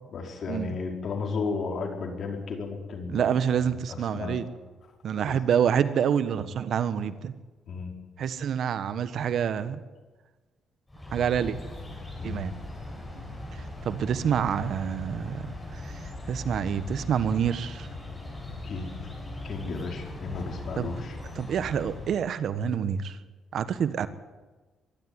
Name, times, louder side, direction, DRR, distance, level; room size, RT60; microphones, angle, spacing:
voice 1, 0.1-3.3 3.6-3.8 4.1-4.4 5.2-5.3 7.7-7.9 12.2-12.5 18.6-19.1 19.4-21.4, left 4 dB, 60° left, 3 dB, 4.7 m, -34 dB
voice 2, 3.1-4.4 5.0-7.3 8.2-9.8 11.1-11.6 12.2-12.5 13.1-13.2 13.8-17.9 20.8-20.9 21.3-23.2 23.5-24.1, right 8 dB, 65° right, 13 dB, 1.3 m, -27 dB
sound 1, 10.9-22.3, left 1 dB, 15° left, 8.0 m, -39 dB
22.5 x 12.5 x 9.7 m, 1.3 s
cardioid pair, 90°, 0 cm